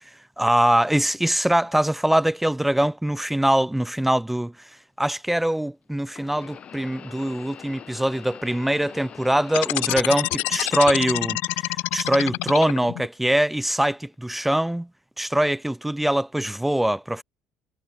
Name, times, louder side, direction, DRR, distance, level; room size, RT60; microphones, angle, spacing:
voice 1, 0.4-4.5 5.0-11.4 11.7-14.9 15.2-17.2, right 1 dB, 5° right, 0.3 m, -23 dB
sound 1, 4.0-4.1 6.1-11.1 11.5-12.3 13.0-13.2 14.1-14.2, left 8 dB, 45° left, 3.4 m, -44 dB
sound 2, 9.5-13.1, left 24 dB, 80° left, 0.4 m, -26 dB
supercardioid pair, 100°, 3 cm